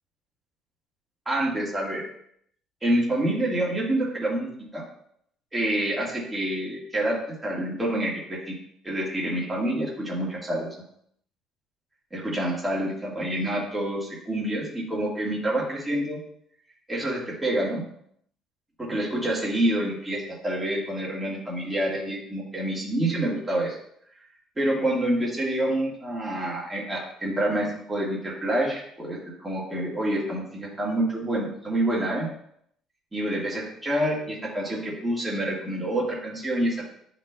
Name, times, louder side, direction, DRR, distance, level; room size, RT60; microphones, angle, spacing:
voice 1, 1.2-2.0 2.8-4.8 5.5-8.5 8.8-10.7 12.1-16.2 16.9-17.8 18.8-23.8 24.6-32.3 33.1-36.9, right 1 dB, 10° right, -5 dB, 1.6 m, -27 dB
11.5 x 4.0 x 2.2 m, 0.70 s
cardioid pair, 165°, 0 cm